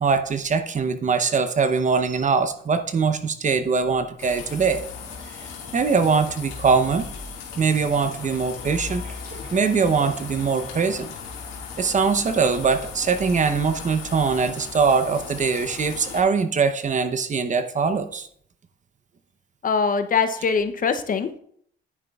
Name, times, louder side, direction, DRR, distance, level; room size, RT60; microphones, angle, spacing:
voice 1, 0.0-4.8 5.4-7.1 7.6-11.1 11.8-18.3, right 5 dB, 40° right, 10 dB, 0.8 m, -22 dB
sound 1, 4.2-16.2, left 5 dB, 90° left, 1.9 m, -37 dB
voice 2, 19.6-21.4, left 5 dB, 45° left, 9 dB, 0.7 m, -22 dB
9.7 x 9.2 x 2.4 m, 0.64 s
cardioid pair, 90°, 20 cm